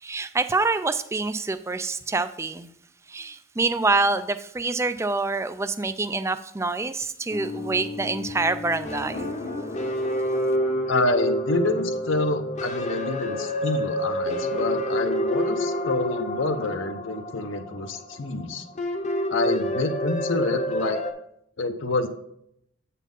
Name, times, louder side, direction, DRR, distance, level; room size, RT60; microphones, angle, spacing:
voice 1, 0.0-2.7 3.1-9.3, right 3 dB, 15° right, 0.3 m, -26 dB
sound 1, 7.3-21.1, equal, 35° left, 0.7 m, -28 dB
voice 2, 10.9-18.6 19.3-21.0 21.6-22.1, left 2 dB, 70° left, 0.7 m, -27 dB
8.3 x 4.2 x 5.3 m
head